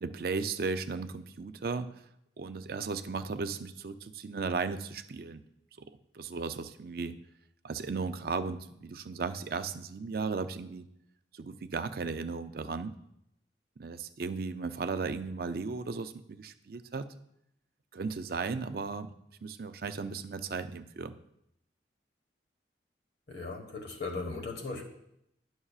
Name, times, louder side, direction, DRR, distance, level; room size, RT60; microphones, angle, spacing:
voice 1, 0.0-1.9 2.4-5.4 5.8-5.9 6.1-7.1 7.6-10.9 11.3-13.0 13.8-17.1 17.9-19.1 19.4-21.1, right 4 dB, 55° right, 10 dB, 0.4 m, -35 dB
voice 2, 23.3-24.8, left 3 dB, 65° left, 2 dB, 1.3 m, -37 dB
11.0 x 6.2 x 2.4 m, 0.78 s
head